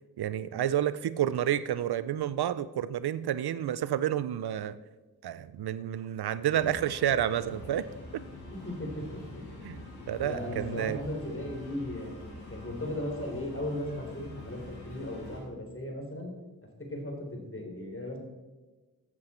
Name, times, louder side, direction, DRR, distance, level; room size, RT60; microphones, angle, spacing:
voice 1, 0.2-4.8 5.2-7.9 8.1-8.2 9.6-9.8 10.1-11.0, right 10 dB, 75° right, 16 dB, 0.6 m, -30 dB
sound 1, 6.5-15.4, left 1 dB, 80° left, 4.7 m, -45 dB
voice 2, 8.5-9.4 10.2-12.1 12.5-16.3 16.8-18.2, left 1 dB, 35° left, 2 dB, 3.7 m, -37 dB
15.0 x 8.3 x 4.4 m, 1.2 s
cardioid pair, 45°, 39 cm